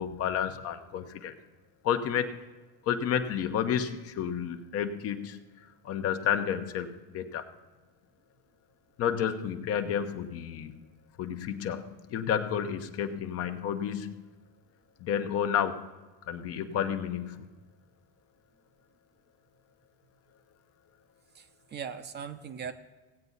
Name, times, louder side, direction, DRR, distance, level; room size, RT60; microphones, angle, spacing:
voice 1, 0.0-1.3 1.8-2.4 2.9-5.4 5.8-7.4 9.0-10.7 11.2-14.2 15.0-15.9 16.3-17.5, left 8 dB, 50° left, 7 dB, 0.9 m, -31 dB
voice 2, 21.3-22.7, right 7 dB, 35° right, 9 dB, 0.7 m, -39 dB
16.5 x 8.1 x 4.0 m, 1.2 s
supercardioid pair, 115°, 31 cm